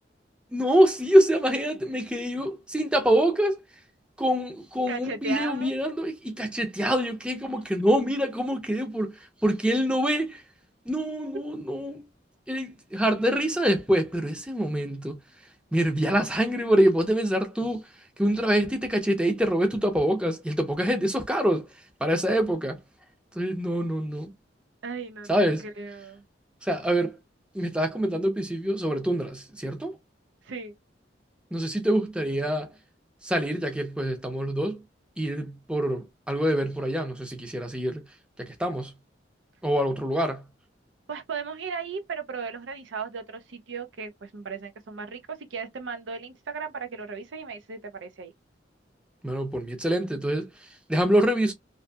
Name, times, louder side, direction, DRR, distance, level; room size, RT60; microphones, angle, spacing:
voice 1, 0.5-3.6 4.2-10.4 10.9-12.0 12.5-15.2 15.7-17.8 18.2-21.7 22.0-22.8 23.3-24.3 25.3-25.7 26.6-27.2 27.5-30.0 31.5-32.7 33.2-34.8 35.2-38.1 38.4-38.9 39.6-40.4 49.2-50.5 50.9-51.5, equal, 5° right, 0.5 m, -25 dB
voice 2, 4.9-5.7 24.8-26.2 30.5-30.8 41.1-48.3, right 5 dB, 80° right, 0.5 m, -36 dB
2.6 x 2.6 x 2.3 m
head